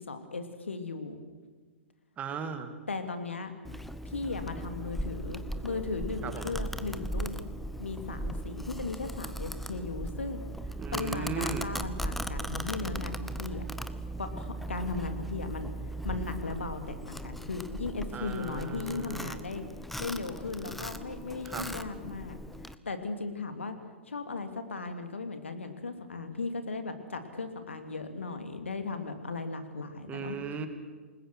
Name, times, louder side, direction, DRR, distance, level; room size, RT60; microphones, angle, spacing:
voice 1, 0.1-1.2 2.9-3.5 4.0-7.5 7.8-10.4 10.9-13.6 14.2-15.7 16.0-19.6 20.0-22.4 22.8-23.7 24.1-30.4, left 3 dB, 70° left, 8 dB, 2.8 m, -37 dB
voice 2, 2.2-2.7 6.2-6.5 10.8-11.7 18.1-19.4 21.4-21.7 30.1-30.7, right 6 dB, 20° right, 8 dB, 2.5 m, -37 dB
Domestic sounds home sounds, 3.6-22.7, right 1 dB, ahead, 0.9 m, -38 dB
28.5 x 20.5 x 6.3 m, 1.4 s
figure-of-eight pair, 110°, 7 cm